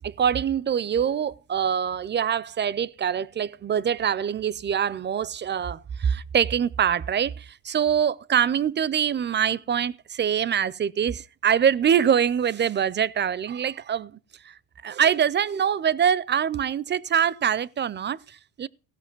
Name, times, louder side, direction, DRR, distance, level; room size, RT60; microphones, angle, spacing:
voice 1, 0.0-14.2 14.4-18.7, right 8 dB, 25° right, 0.4 m, -24 dB
16.5 x 5.7 x 6.0 m
supercardioid pair, 85°, 43 cm